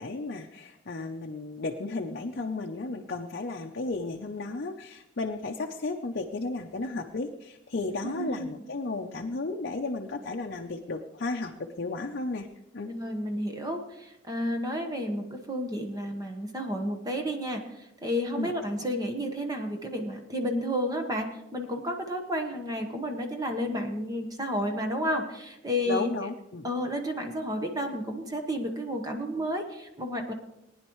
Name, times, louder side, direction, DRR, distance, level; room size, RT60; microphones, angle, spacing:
voice 1, 0.0-12.5 12.7-12.9 18.4-18.5 25.9-26.7, left 3 dB, 55° left, 2 dB, 0.7 m, -34 dB
voice 2, 8.0-8.5 12.9-26.1 26.6-30.3, equal, 20° right, 4 dB, 1.2 m, -31 dB
19.5 x 10.0 x 3.1 m, 0.88 s
head